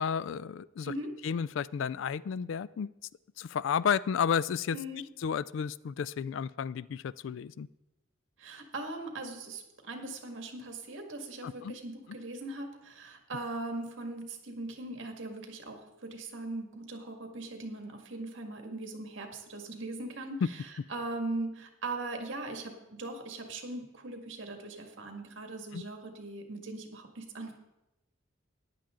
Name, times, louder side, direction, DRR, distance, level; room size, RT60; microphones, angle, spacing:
voice 1, 0.0-0.9 1.2-2.9 3.4-4.8 5.2-7.7 11.4-11.7 25.7-25.8, left 7 dB, 65° left, 19 dB, 0.3 m, -32 dB
voice 2, 8.4-20.6 20.9-27.5, right 2 dB, 65° right, 4 dB, 1.9 m, -40 dB
14.5 x 10.5 x 3.8 m, 0.94 s
head